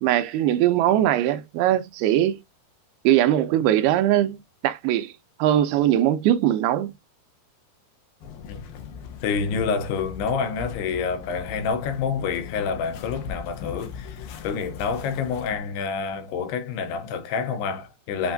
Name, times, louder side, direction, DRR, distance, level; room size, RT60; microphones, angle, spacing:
voice 1, 0.0-2.4 3.0-4.4 4.6-5.1 5.4-6.9, right 12 dB, 80° right, 2.5 m, -21 dB
sound 1, 8.2-15.6, left 7 dB, 75° left, 2.4 m, -39 dB
voice 2, 9.2-18.3, left 5 dB, 90° left, 2.9 m, -28 dB
7.9 x 2.6 x 2.6 m
omnidirectional pair, 4.5 m